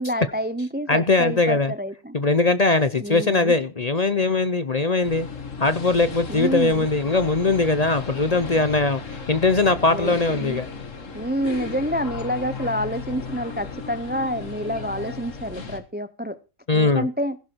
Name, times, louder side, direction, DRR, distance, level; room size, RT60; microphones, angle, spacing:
voice 1, 0.0-2.1 3.0-3.5 6.3-6.9 9.9-10.6 11.1-16.4 16.7-17.4, equal, 15° right, 0.3 m, -28 dB
voice 2, 0.9-1.7 2.1-5.3 5.6-10.7 16.7-17.1, left 3 dB, 40° left, 0.6 m, -21 dB
sound 1, 5.0-15.8, left 5 dB, 60° left, 2.1 m, -35 dB
16.0 x 11.5 x 4.5 m
omnidirectional pair, 1.5 m